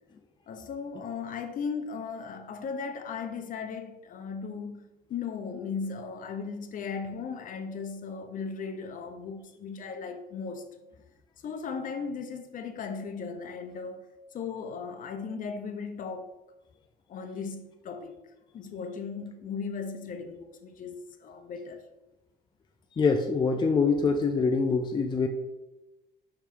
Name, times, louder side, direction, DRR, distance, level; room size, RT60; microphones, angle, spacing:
voice 1, 0.5-10.7 11.4-14.0 14.3-16.3 17.1-18.1 18.5-21.8, left 5 dB, 50° left, 0.8 m, -37 dB
voice 2, 23.0-25.3, left 4 dB, 25° left, 0.5 m, -24 dB
6.1 x 3.7 x 4.5 m
cardioid pair, 110°, 17 cm